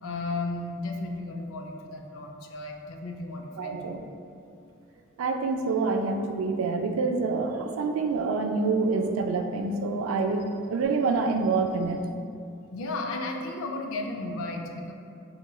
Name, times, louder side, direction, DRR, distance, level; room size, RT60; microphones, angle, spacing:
voice 1, 0.0-4.0 12.7-14.9, left 2 dB, 75° left, 2 dB, 0.4 m, -34 dB
voice 2, 3.6-4.0 5.2-12.1, right 4 dB, 80° right, 5 dB, 0.3 m, -27 dB
4.7 x 2.8 x 2.3 m, 2.5 s
head